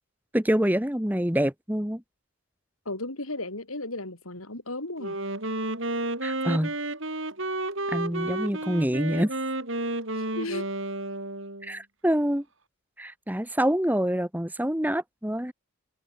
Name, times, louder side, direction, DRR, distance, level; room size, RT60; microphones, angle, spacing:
voice 1, 0.3-2.0 6.2-6.7 7.9-9.3 11.6-12.4 13.0-15.5, equal, 10° right, 1.4 m, -26 dB
voice 2, 2.9-5.2 10.1-10.7, left 2 dB, 80° left, 5.3 m, -35 dB
Wind instrument woodwind instrument, 5.0-11.7, right 2 dB, 60° right, 4.7 m, -31 dB
head